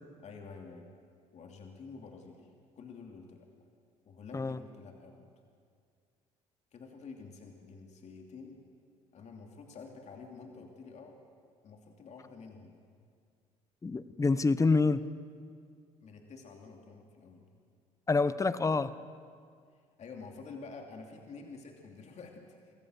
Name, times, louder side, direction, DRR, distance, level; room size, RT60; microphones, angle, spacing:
voice 1, 0.2-0.8 1.3-2.5 2.8-3.5 4.1-5.3 6.7-8.6 9.1-11.2 11.6-12.8 16.0-17.6 20.0-22.7, left 4 dB, 50° left, 2 dB, 2.8 m, -49 dB
voice 2, 13.8-15.0 18.1-18.9, left 3 dB, 20° left, 15 dB, 0.9 m, -27 dB
26.0 x 14.0 x 8.0 m, 2.2 s
supercardioid pair, 75°, 15 cm